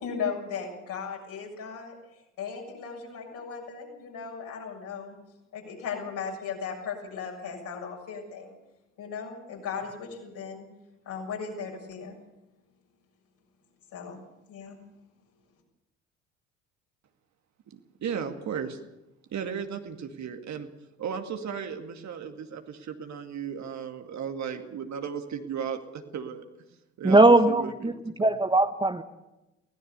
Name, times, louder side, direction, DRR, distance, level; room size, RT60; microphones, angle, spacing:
voice 1, 0.0-2.0 2.4-5.2 5.5-8.6 9.0-10.7 11.1-12.2 13.9-14.2 14.5-14.8, left 6 dB, 60° left, 0 dB, 7.1 m, -36 dB
voice 2, 17.7-18.8 19.3-20.7 21.0-26.5 27.0-28.0, right 7 dB, 45° right, 6 dB, 2.3 m, -35 dB
voice 3, 27.0-27.9 28.2-29.0, right 2 dB, 15° right, 8 dB, 1.3 m, -19 dB
23.5 x 17.5 x 6.9 m, 0.97 s
figure-of-eight pair, 50°, 37 cm